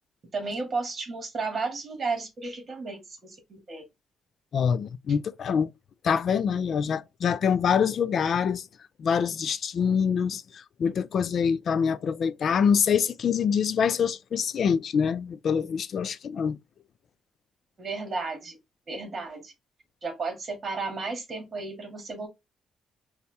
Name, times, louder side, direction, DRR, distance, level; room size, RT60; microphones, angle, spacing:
voice 1, 0.3-3.8 17.8-18.6 18.9-19.5 20.0-22.3, right 4 dB, 40° right, 1.7 m, -33 dB
voice 2, 4.5-5.7 6.0-8.7 9.0-16.6, left 7 dB, 55° left, 0.4 m, -25 dB
4.1 x 2.4 x 3.3 m
cardioid pair, 90°, 0 cm